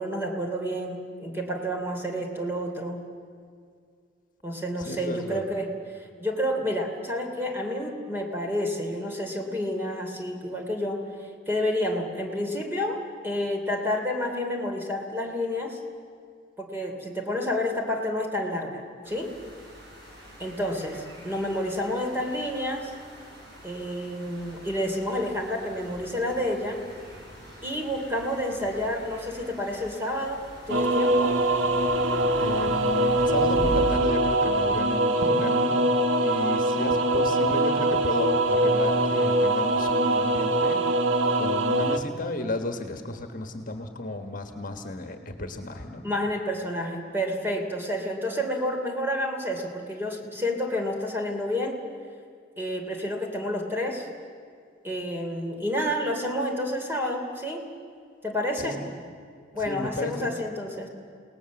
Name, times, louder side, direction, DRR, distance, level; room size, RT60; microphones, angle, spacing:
voice 1, 0.0-3.0 4.4-15.8 16.6-19.3 20.4-22.9 23.6-26.8 27.6-31.4 46.0-51.8 52.6-54.1 54.8-57.7 58.2-58.8 59.5-60.9, left 1 dB, 10° right, 2 dB, 3.0 m, -29 dB
voice 2, 4.8-5.5 32.3-36.0 36.2-40.8 41.3-46.1 58.6-58.9 59.6-60.3, left 2 dB, 45° left, 6 dB, 1.6 m, -33 dB
sound 1, 19.0-34.0, equal, 55° right, 6.7 m, -42 dB
sound 2, 30.7-42.0, right 1 dB, 90° right, 1.3 m, -23 dB
29.5 x 18.5 x 7.3 m, 2.3 s
head